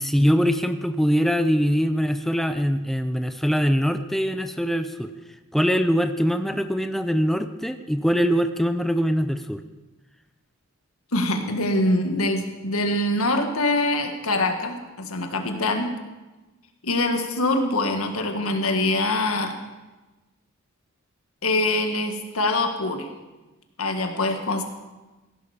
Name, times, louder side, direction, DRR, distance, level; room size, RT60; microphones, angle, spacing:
voice 1, 0.0-5.1 5.5-9.6, equal, ahead, 9 dB, 0.5 m, -22 dB
voice 2, 11.1-16.0 16.8-19.5 21.4-23.1 23.8-24.6, left 2 dB, 85° left, 5 dB, 1.7 m, -24 dB
16.5 x 11.5 x 5.0 m, 1.1 s
head